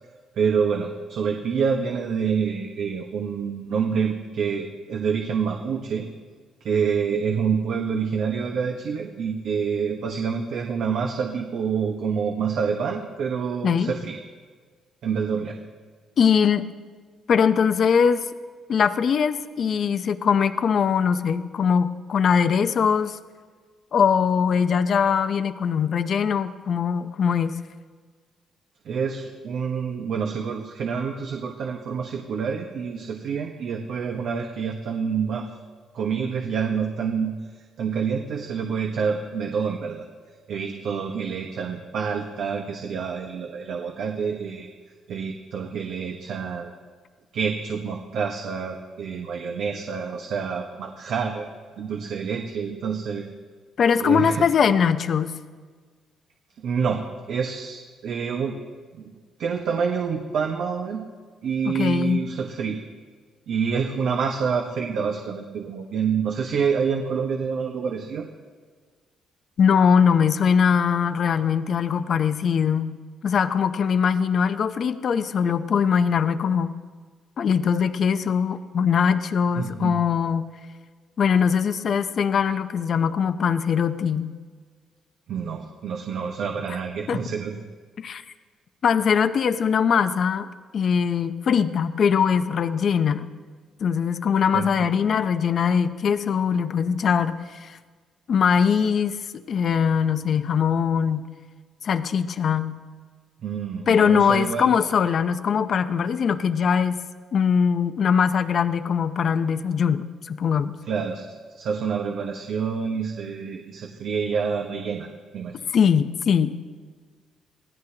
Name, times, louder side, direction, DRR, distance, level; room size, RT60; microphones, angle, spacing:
voice 1, 0.4-6.1 6.6-14.2 15.0-15.6 28.8-35.5 35.9-37.4 37.8-40.1 40.5-44.7 45.1-46.7 47.3-51.5 51.8-53.3 54.0-54.5 56.6-57.0 57.3-58.6 58.9-59.1 59.4-61.0 61.4-62.8 63.5-68.3 79.5-80.0 85.3-87.5 94.5-94.7 103.4-104.8 110.9-115.1 115.3-115.6, right 6 dB, 70° right, 2 dB, 1.3 m, -27 dB
voice 2, 16.2-16.7 17.3-18.3 18.7-23.2 23.9-27.5 53.8-55.3 61.6-62.2 69.6-73.0 73.2-76.7 77.4-80.5 81.2-84.3 87.1-87.2 88.0-88.2 88.8-93.3 93.8-97.8 98.3-99.2 99.5-101.2 101.8-102.8 103.9-107.0 107.3-110.7 115.7-116.5, left 7 dB, 55° left, 10 dB, 0.8 m, -21 dB
25.0 x 17.0 x 2.9 m, 1.5 s
cardioid pair, 90°, 0 cm